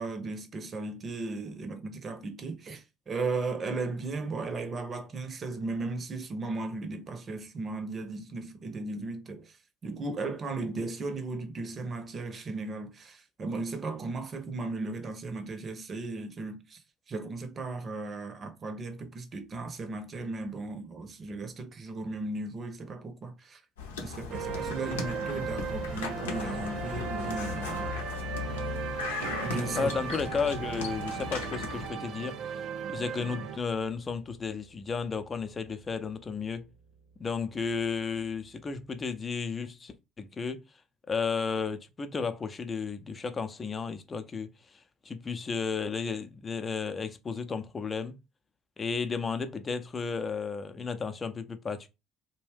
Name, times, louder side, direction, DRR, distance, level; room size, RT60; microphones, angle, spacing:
voice 1, 0.0-9.6 9.8-16.8 17.1-23.6 24.0-27.9 29.4-30.0, right 3 dB, 40° right, 0.7 m, -36 dB
sound 1, 23.8-31.9, left 5 dB, 80° left, 0.6 m, -37 dB
sound 2, 24.3-33.6, right 7 dB, 55° right, 0.3 m, -37 dB
Piano, 29.2-38.6 38.9-39.1, right 1 dB, 85° right, 0.7 m, -48 dB
voice 2, 29.7-32.6 32.9-36.6 37.2-40.6 41.1-44.8 45.0-48.2 48.8-51.9, left 5 dB, 30° left, 0.5 m, -33 dB
2.5 x 2.2 x 3.4 m
figure-of-eight pair, 55°, 0 cm